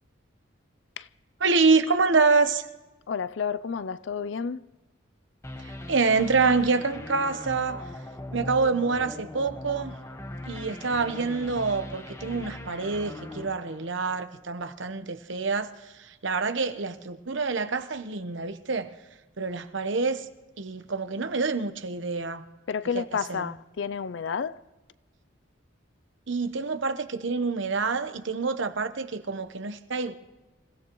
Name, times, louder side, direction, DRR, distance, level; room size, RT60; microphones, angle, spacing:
voice 1, 1.4-2.7 5.6-7.8 8.3-9.9 10.5-15.7 16.0-18.9 19.4-20.3 20.6-22.4 22.9-23.0 23.3-23.4 26.3-30.1, right 4 dB, 70° right, 1.0 m, -26 dB
voice 2, 3.1-4.6 22.7-24.6, left 6 dB, 65° left, 0.4 m, -30 dB
sound 1, 5.4-14.5, left 1 dB, 15° left, 1.0 m, -40 dB
28.5 x 16.0 x 3.1 m
head